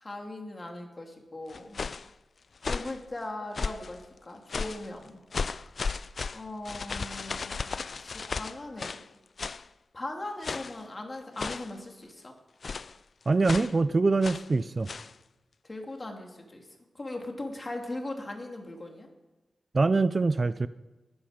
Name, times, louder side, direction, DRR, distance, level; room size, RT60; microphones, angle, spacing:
voice 1, 0.0-1.8 2.6-5.2 5.6-5.7 6.3-7.7 8.0-9.0 9.9-12.3 15.6-16.7 16.9-19.1, left 2 dB, 30° left, 2 dB, 2.6 m, -39 dB
sound 1, 1.5-2.1 2.6-3.0 3.5-4.0 4.5-4.9 5.3-9.1 9.4-9.7 10.4-10.8 11.4-11.8 12.6-13.0 13.4-13.8 14.2-14.5 14.9-15.1, left 4 dB, 50° left, 0.4 m, -35 dB
voice 2, 13.3-14.9 19.7-20.7, right 3 dB, 35° right, 14 dB, 0.4 m, -24 dB
20.5 x 13.5 x 5.1 m, 1.1 s
wide cardioid pair, 125°, 0 cm